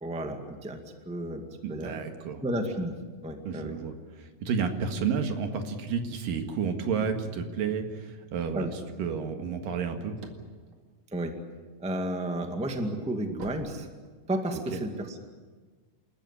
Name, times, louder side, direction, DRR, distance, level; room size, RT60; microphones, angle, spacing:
voice 1, 0.0-0.8 1.0-1.4 1.7-2.0 2.4-3.0 3.2-3.8 8.5-8.7 11.1-11.3 11.8-13.9 14.3-15.2, right 1 dB, 5° right, 5 dB, 1.2 m, -32 dB
voice 2, 1.6-2.4 3.5-10.2 14.7-14.8, right 6 dB, 85° right, 5 dB, 3.6 m, -31 dB
sound 1, 10.0-11.9 12.4-14.6, right 2 dB, 55° right, 3.1 m, -47 dB
28.5 x 14.0 x 9.9 m, 1.4 s
omnidirectional pair, 3.8 m